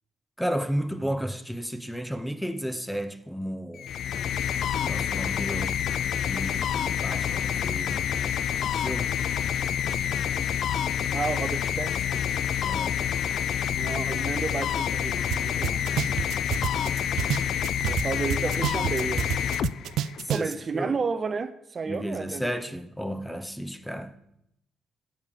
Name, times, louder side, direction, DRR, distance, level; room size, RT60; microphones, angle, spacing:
voice 1, 0.4-3.9 4.8-5.7 6.3-8.0 8.7-9.1 12.6-13.0 16.7-16.9 20.3-21.0 21.9-24.1, equal, 5° left, 1.0 m, -33 dB
sound 1, 3.7-20.3, left 9 dB, 70° left, 0.5 m, -28 dB
voice 2, 11.1-12.2 13.7-16.0 17.8-19.5 20.3-22.5, right 5 dB, 40° right, 0.7 m, -32 dB
sound 2, 15.3-15.4 15.6-18.0 18.3-20.5, right 11 dB, 80° right, 0.4 m, -28 dB
9.1 x 8.7 x 7.4 m
cardioid pair, 90°, 0 cm